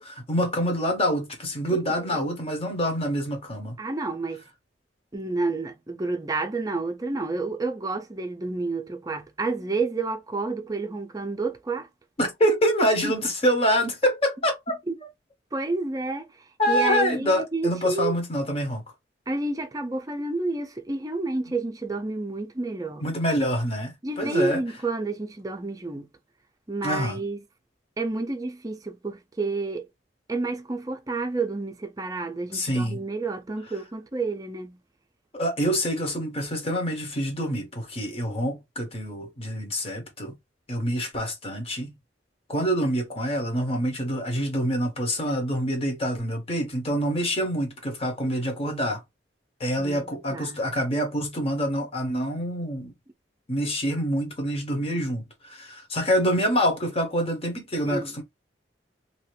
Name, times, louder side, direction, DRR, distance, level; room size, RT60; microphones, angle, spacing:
voice 1, 0.0-3.8 12.2-14.6 16.6-18.8 23.0-24.6 26.8-27.2 32.5-33.0 35.3-40.3 40.7-41.9 42.5-49.0 49.6-52.9 53.5-58.2, equal, 35° left, 1.0 m, -26 dB
voice 2, 1.7-2.2 3.8-4.4 5.1-11.9 13.0-13.1 14.9-15.0 15.5-16.3 16.7-18.1 19.3-23.0 24.0-26.1 26.7-27.4 28.0-29.9 30.3-34.8 49.8-50.6 57.9-58.2, right 3 dB, 20° right, 0.5 m, -30 dB
2.8 x 2.5 x 3.0 m
head